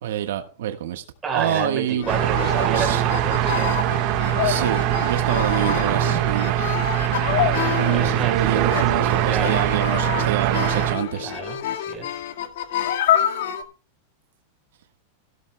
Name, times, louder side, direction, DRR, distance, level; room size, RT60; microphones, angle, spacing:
voice 1, 0.0-1.0 1.3-2.1 2.4-3.0 4.4-6.6 7.8-11.3, right 11 dB, 75° right, 1.4 m, -26 dB
voice 2, 1.2-3.8 7.9-9.7 11.2-12.2, right 4 dB, 15° right, 4.6 m, -30 dB
sound 1, 2.0-13.6, left 11 dB, 70° left, 1.7 m, -27 dB
sound 2, 2.1-11.0, right 13 dB, 40° right, 1.4 m, -22 dB
16.0 x 12.5 x 2.2 m
supercardioid pair, 170°, 0 cm